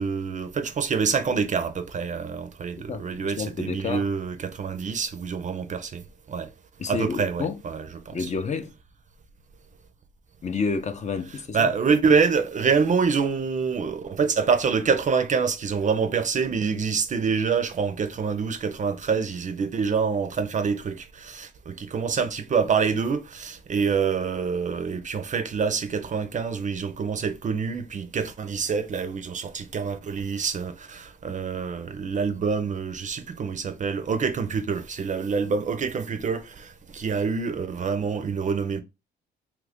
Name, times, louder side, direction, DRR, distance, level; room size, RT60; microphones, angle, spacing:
voice 1, 0.0-6.0 6.3-6.5 6.9-8.3 11.3-38.8, right 5 dB, 40° right, 0.5 m, -26 dB
voice 2, 2.8-4.1 6.8-7.6 8.1-8.7 10.4-11.7, left 5 dB, 35° left, 0.6 m, -30 dB
2.9 x 2.5 x 3.4 m
cardioid pair, 90°, 20 cm